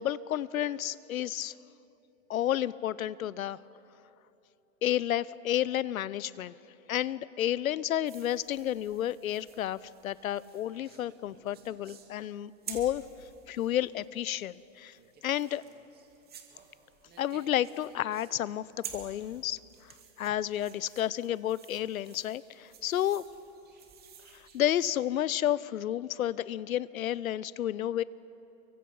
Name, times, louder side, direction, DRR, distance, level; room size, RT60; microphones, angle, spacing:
voice 1, 0.0-1.5 2.3-3.6 4.8-6.5 6.9-13.0 13.5-15.0 15.2-15.6 17.2-18.7 18.9-23.2 24.3-28.0, left 12 dB, 85° left, 20 dB, 0.8 m, -31 dB
sound 1, 8.1-24.9, right 8 dB, 25° right, 2.6 m, -51 dB
30.0 x 24.0 x 5.5 m, 3.0 s
hypercardioid pair, 130°, 41 cm